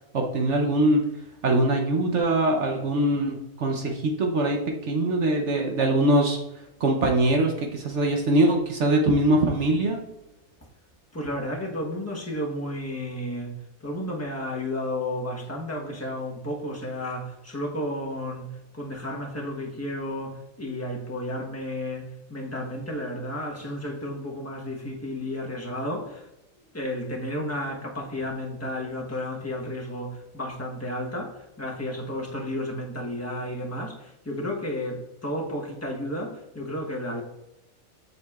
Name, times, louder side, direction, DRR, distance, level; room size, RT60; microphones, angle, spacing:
voice 1, 0.1-1.0 1.4-6.4 6.8-10.0, right 1 dB, 60° right, 2 dB, 1.0 m, -22 dB
voice 2, 11.1-13.5 13.8-18.5 18.7-22.0 22.3-26.3 26.7-37.2, left 1 dB, 10° left, -1 dB, 1.0 m, -32 dB
7.3 x 6.5 x 2.4 m, 0.92 s
omnidirectional pair, 1.5 m